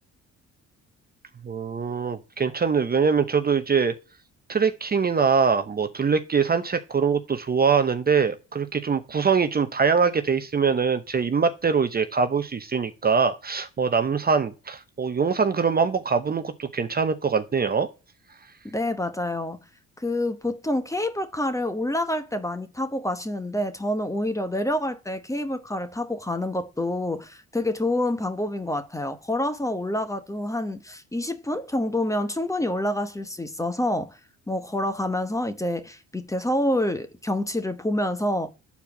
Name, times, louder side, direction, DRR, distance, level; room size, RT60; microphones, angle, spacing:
voice 1, 1.4-3.9 4.5-17.9, right 5 dB, 30° right, 0.8 m, -23 dB
voice 2, 18.6-19.6 20.0-34.2 34.5-38.5, left 1 dB, 10° left, 1.0 m, -27 dB
6.9 x 4.6 x 5.9 m
cardioid pair, 90°, 30 cm